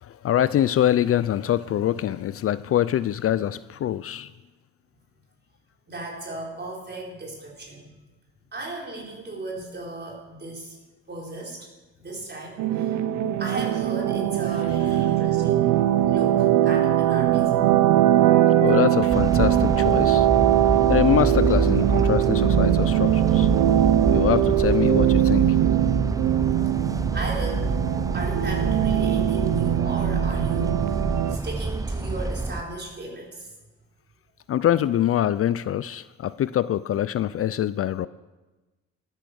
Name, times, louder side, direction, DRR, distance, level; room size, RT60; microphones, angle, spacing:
voice 1, 0.0-4.3 18.6-20.3 20.9-23.5 24.1-25.4 34.5-38.1, left 11 dB, 50° left, 16 dB, 0.4 m, -24 dB
voice 2, 5.9-7.9 8.5-10.8 11.1-11.7 12.0-13.0 13.4-17.8 27.1-27.8 28.1-33.5, right 2 dB, 35° right, -1 dB, 4.4 m, -36 dB
sound 1, 12.6-31.4, right 12 dB, 80° right, 0.8 m, -21 dB
sound 2, 19.1-32.6, right 2 dB, 10° right, 0.6 m, -27 dB
12.5 x 9.9 x 6.3 m, 1.2 s
cardioid pair, 90°, 30 cm